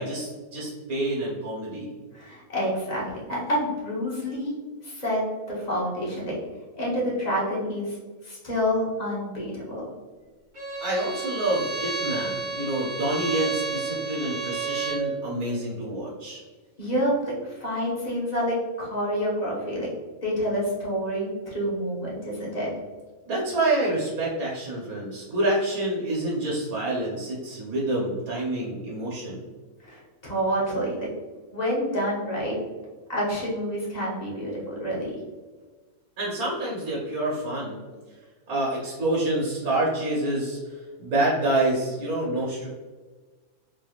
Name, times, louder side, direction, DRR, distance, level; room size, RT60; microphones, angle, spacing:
voice 1, 0.0-1.9 10.8-16.4 23.3-29.4 36.2-37.8 38.5-42.7, right 1 dB, 80° right, -5 dB, 1.4 m, -27 dB
voice 2, 2.1-4.5 4.8-6.3 6.8-8.0 8.2-9.8 16.8-19.9 20.2-22.7 29.8-31.1 31.5-32.6 33.1-35.2, equal, 30° left, -5 dB, 1.2 m, -28 dB
Bowed string instrument, 10.5-15.1, right 4 dB, 35° right, 1.3 m, -31 dB
4.2 x 3.4 x 2.4 m, 1.4 s
omnidirectional pair, 1.5 m